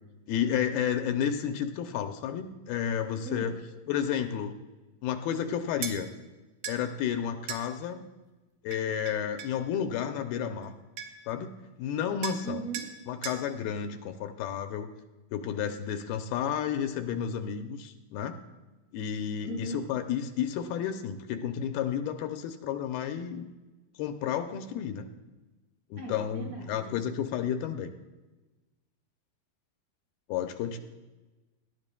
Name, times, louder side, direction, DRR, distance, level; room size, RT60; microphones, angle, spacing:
voice 1, 0.3-3.5 3.9-4.6 5.0-6.1 6.7-8.0 8.6-10.7 11.3-12.6 13.1-14.9 15.3-18.4 18.9-23.5 24.0-25.1 25.9-27.9 30.3-30.8, left 8 dB, 80° left, 7 dB, 2.5 m, -31 dB
voice 2, 3.2-3.6 12.4-13.0 19.4-19.9 26.0-27.1, right 2 dB, 40° right, -3 dB, 3.2 m, -39 dB
sound 1, 5.8-6.0 6.6-6.8 7.5-7.7 8.7-9.6 10.6-10.7 11.0-11.3 12.2-12.5 12.7-12.9 13.2-13.4, right 8 dB, 75° right, 2.6 m, -37 dB
19.5 x 11.5 x 2.2 m, 1.1 s
omnidirectional pair, 4.5 m